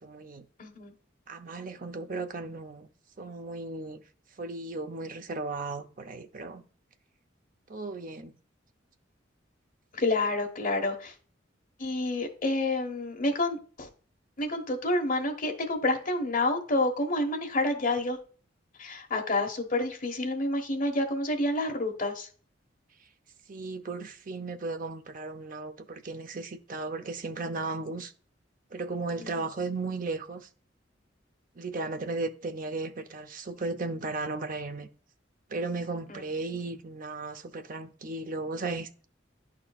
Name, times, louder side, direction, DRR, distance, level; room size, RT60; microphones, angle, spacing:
voice 1, 0.0-0.4 1.3-2.9 3.2-4.0 4.4-6.7 7.7-8.3 23.5-28.1 28.7-30.5 31.6-34.9 35.5-38.9, right 3 dB, 45° right, 0.7 m, -35 dB
voice 2, 0.6-0.9 9.9-11.1 11.8-13.9 14.4-18.2 18.8-22.3 29.2-29.4 36.1-36.2, left 2 dB, 45° left, 1.3 m, -29 dB
11.0 x 4.3 x 2.4 m
head